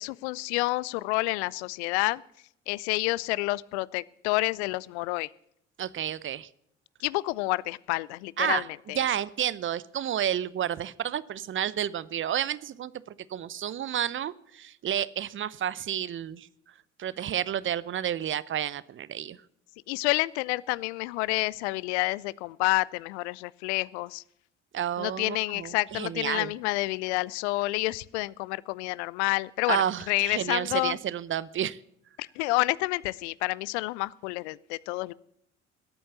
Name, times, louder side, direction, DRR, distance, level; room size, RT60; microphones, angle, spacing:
voice 1, 0.0-2.2 2.7-5.3 7.0-8.6 8.9-9.0 19.9-24.2 25.0-31.0 32.2-35.1, left 21 dB, 65° left, 23 dB, 0.6 m, -29 dB
voice 2, 5.8-6.5 8.4-8.7 8.9-12.9 13.3-16.5 17.0-19.4 24.7-26.5 29.7-31.8, right 10 dB, 35° right, 19 dB, 0.7 m, -30 dB
18.5 x 8.7 x 7.1 m, 0.73 s
figure-of-eight pair, 55°, 36 cm